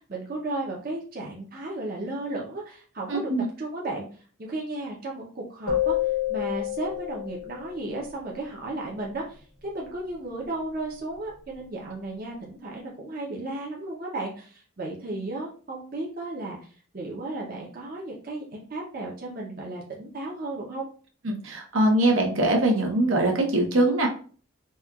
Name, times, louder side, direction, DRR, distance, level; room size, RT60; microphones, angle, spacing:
voice 1, 0.0-3.3 3.6-4.1 4.4-6.0 6.3-16.6 16.9-20.9, right 2 dB, 45° right, -3 dB, 0.6 m, -34 dB
voice 2, 3.1-3.5 21.2-24.1, right 1 dB, 75° right, 1 dB, 0.8 m, -22 dB
sound 1, 5.7-7.9, left 12 dB, 90° left, 0.7 m, -28 dB
4.2 x 2.3 x 2.3 m, 0.41 s
head